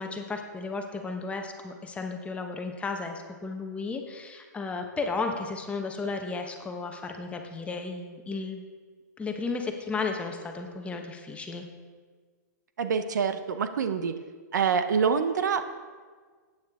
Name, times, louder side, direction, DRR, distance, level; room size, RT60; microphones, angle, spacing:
voice 1, 0.0-8.6 9.2-11.7, left 4 dB, 10° left, 4 dB, 1.1 m, -34 dB
voice 2, 12.8-14.2 14.5-15.7, right 6 dB, 75° right, 10 dB, 0.8 m, -26 dB
15.5 x 9.0 x 3.6 m, 1.5 s
hypercardioid pair, 125°, 10 cm